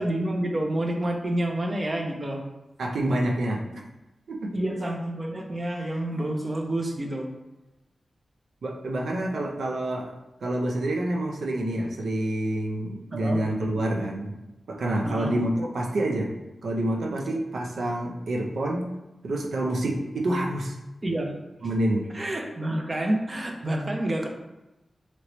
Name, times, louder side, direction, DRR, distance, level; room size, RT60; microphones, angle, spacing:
voice 1, 0.0-2.4 4.5-7.3 13.1-13.4 15.0-15.3 21.0-21.3 22.1-24.3, right 1 dB, 35° right, 2 dB, 0.6 m, -28 dB
voice 2, 2.8-3.8 4.3-4.6 8.6-10.1 10.4-14.3 14.7-16.3 16.6-18.9 19.2-20.8 21.6-22.1, right 1 dB, 90° right, 0 dB, 0.5 m, -27 dB
3.0 x 2.9 x 3.0 m, 1.0 s
cardioid pair, 65°, 0 cm